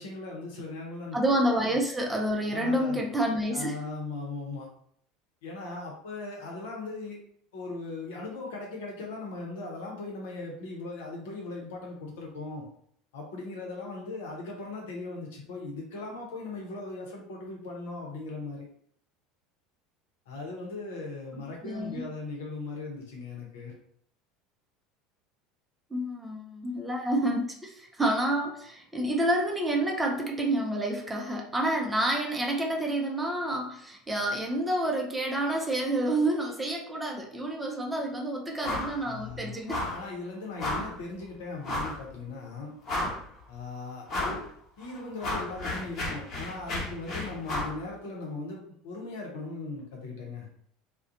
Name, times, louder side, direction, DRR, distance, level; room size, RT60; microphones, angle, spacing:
voice 1, 0.0-1.2 1.7-1.8 2.5-3.0 3.5-4.7 5.4-7.2 7.5-12.7 13.1-18.6 20.3-23.7 39.0-39.6 39.9-42.7 43.5-44.4 44.8-48.6 48.8-50.5, left 3 dB, 70° left, -1 dB, 0.8 m, -38 dB
voice 2, 1.1-3.8 21.3-22.0 25.9-39.8, right 1 dB, 15° right, 0 dB, 0.5 m, -29 dB
sound 1, 38.6-39.0 39.2-39.4 39.7-40.0 40.6-40.9 41.6-42.0 42.5-42.6 42.8-43.4 44.1-44.4 44.8-47.8, left 2 dB, 40° left, 1.1 m, -33 dB
2.4 x 2.1 x 2.6 m, 0.64 s
hypercardioid pair, 75°, 0 cm